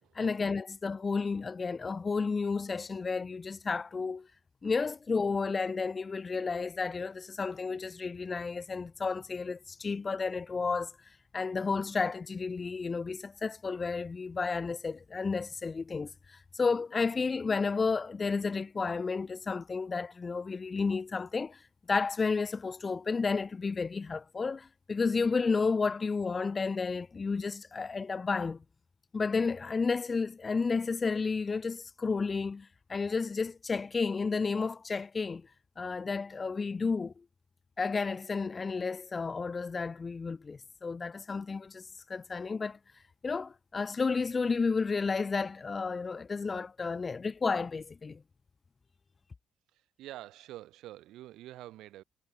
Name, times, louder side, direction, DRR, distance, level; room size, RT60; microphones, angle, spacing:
voice 1, 0.2-4.3 4.6-10.9 11.3-21.6 21.9-28.6 29.1-35.5 35.8-37.1 37.8-42.8 43.2-48.2, left 4 dB, 35° left, 0.5 m, -32 dB
voice 2, 49.7-52.0, right 15 dB, 90° right, 5.3 m, -47 dB
cardioid pair, 90°, 0 cm